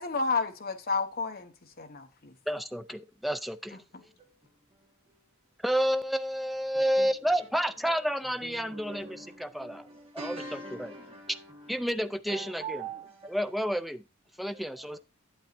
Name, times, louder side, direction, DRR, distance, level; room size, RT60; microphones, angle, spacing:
voice 1, 0.0-2.3 3.9-4.0, left 4 dB, 50° left, 1.1 m, -31 dB
voice 2, 2.5-3.8 5.6-9.8 10.1-10.9 11.7-12.9 13.3-14.0 14.4-15.0, equal, ahead, 0.4 m, -30 dB
voice 3, 8.4-11.9 12.3-13.5 14.5-15.0, right 4 dB, 30° right, 1.3 m, -43 dB
8.9 x 8.6 x 2.6 m
head